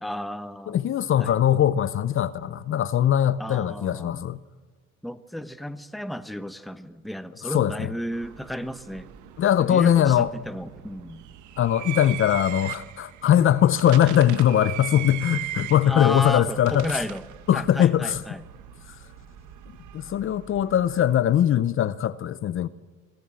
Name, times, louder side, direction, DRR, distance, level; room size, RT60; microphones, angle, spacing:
voice 1, 0.0-0.9 1.2-1.4 3.4-4.2 5.0-9.1 9.6-11.2 14.0-14.1 15.9-17.2 17.5-18.4, equal, ahead, 0.9 m, -33 dB
voice 2, 0.7-4.4 7.5-7.9 9.4-10.3 11.6-16.9 17.5-18.2 19.9-22.7, left 10 dB, 45° left, 0.7 m, -21 dB
sound 1, 8.1-21.2, right 13 dB, 75° right, 1.4 m, -40 dB
22.0 x 17.5 x 7.6 m
cardioid pair, 120°, 30 cm